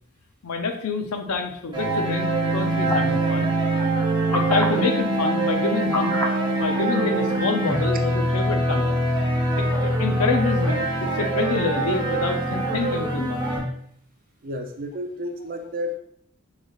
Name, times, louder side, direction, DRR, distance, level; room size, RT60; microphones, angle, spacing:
voice 1, 0.4-3.5 4.3-9.0 9.6-13.4, left 4 dB, 85° left, 5 dB, 0.6 m, -27 dB
sound 1, 1.7-13.6, right 1 dB, 20° right, 0.9 m, -23 dB
sound 2, 2.9-3.2 4.3-4.7 5.9-6.4 7.3-7.4, left 1 dB, 10° left, 0.5 m, -26 dB
voice 2, 14.4-16.0, left 1 dB, 40° right, 5 dB, 0.5 m, -31 dB
6.4 x 3.3 x 2.4 m, 0.69 s
head